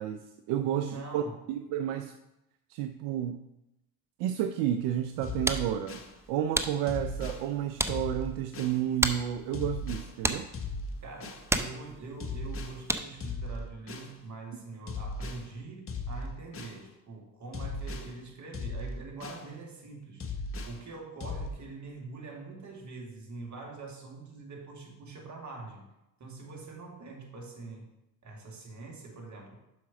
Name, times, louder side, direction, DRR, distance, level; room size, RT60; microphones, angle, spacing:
voice 1, 0.0-1.2 1.5-2.2 2.7-3.4 4.2-6.0 6.3-10.5, right 11 dB, 75° right, 9 dB, 0.6 m, -31 dB
voice 2, 0.6-1.4 11.0-20.2 20.6-25.9 26.2-27.9 28.2-29.6, right 3 dB, 45° right, 0 dB, 2.4 m, -44 dB
sound 1, 5.0-13.3, right 1 dB, 5° right, 0.6 m, -35 dB
sound 2, 5.2-6.1 6.9-7.4 7.9-8.8 9.5-10.1 10.5-11.4 12.2-12.8 13.2-14.1 14.9-15.4 15.9-16.8 17.5-18.1 18.5-19.5 20.2-20.8 21.2-21.5, left 2 dB, 30° left, 1.3 m, -37 dB
6.1 x 5.0 x 5.9 m, 0.90 s
supercardioid pair, 70°, 41 cm